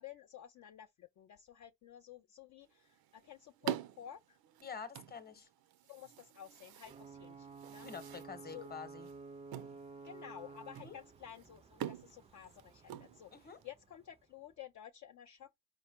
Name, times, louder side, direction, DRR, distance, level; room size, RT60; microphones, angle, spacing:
voice 1, 0.0-4.4 5.4-5.5 5.8-7.9 8.4-8.7 10.0-15.7, left 10 dB, 55° left, 0.5 m, -52 dB
sound 1, 2.6-13.7, right 11 dB, 90° right, 0.5 m, -47 dB
voice 2, 4.6-5.5 7.8-9.1 10.8-11.0 13.3-13.6, left 6 dB, 25° left, 0.9 m, -47 dB
Ocean / Boat Water vehicle / Alarm, 6.8-14.4, right 4 dB, 20° right, 0.3 m, -53 dB
4.9 x 2.1 x 4.3 m
cardioid pair, 125°, 35 cm